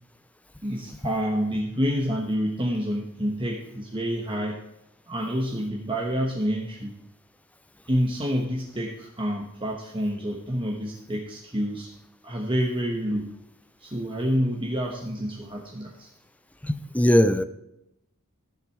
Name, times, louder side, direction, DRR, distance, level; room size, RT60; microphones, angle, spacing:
voice 1, 0.6-4.6 5.1-7.0 7.9-11.9 12.2-13.3 13.8-16.1, equal, 25° right, -1 dB, 1.2 m, -28 dB
voice 2, 16.6-17.4, equal, 5° left, 12 dB, 0.5 m, -20 dB
13.0 x 7.5 x 4.6 m, 0.84 s
head